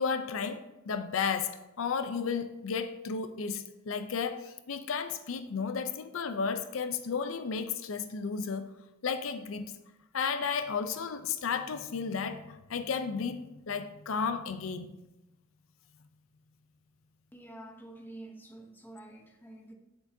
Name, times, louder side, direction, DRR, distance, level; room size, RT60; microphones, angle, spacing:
voice 1, 0.0-8.7 9.0-9.7 10.1-15.0, left 5 dB, 80° left, 0.5 m, -33 dB
voice 2, 17.3-19.7, right 1 dB, 10° left, 0.9 m, -48 dB
8.6 x 7.5 x 2.7 m
head